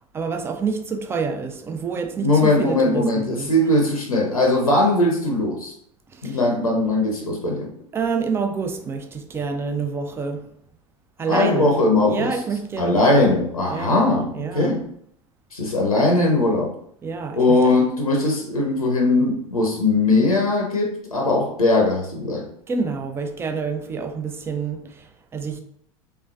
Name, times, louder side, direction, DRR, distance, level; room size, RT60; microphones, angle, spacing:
voice 1, 0.1-3.5 6.1-6.4 7.9-10.6 11.2-11.8 12.1-13.3 13.7-14.0 14.3-14.8 17.0-17.7 22.7-25.6, right 5 dB, 15° right, 0.4 m, -28 dB
voice 2, 2.2-5.7 6.2-7.7 11.3-12.3 12.8-14.8 15.5-16.7 17.3-22.5, left 2 dB, 85° left, 0.6 m, -20 dB
3.3 x 3.0 x 2.3 m
figure-of-eight pair, 80°, 18 cm